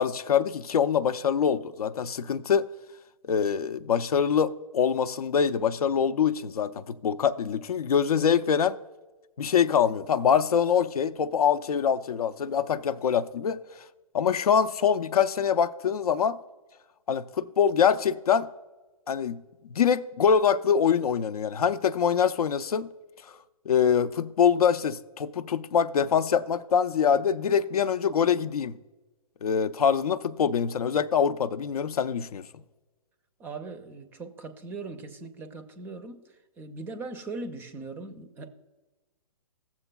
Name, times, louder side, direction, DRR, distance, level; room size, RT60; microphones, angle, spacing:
voice 1, 0.0-2.7 3.3-8.8 9.4-13.6 14.1-16.4 17.1-18.5 19.1-19.4 19.7-22.9 23.7-28.8 29.4-32.4, left 7 dB, 80° left, 0.5 m, -24 dB
voice 2, 33.4-38.5, right 3 dB, 10° right, 0.4 m, -40 dB
15.5 x 7.1 x 2.2 m
hypercardioid pair, 140°, 19 cm